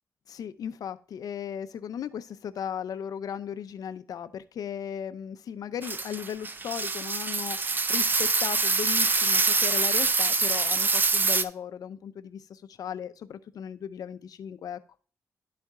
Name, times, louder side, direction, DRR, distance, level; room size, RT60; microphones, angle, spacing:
voice 1, 0.3-14.8, left 8 dB, 75° left, 11 dB, 0.6 m, -36 dB
sound 1, 5.8-11.4, right 3 dB, 30° right, 0.5 m, -25 dB
11.5 x 4.3 x 3.6 m, 0.39 s
cardioid pair, 100°, 6 cm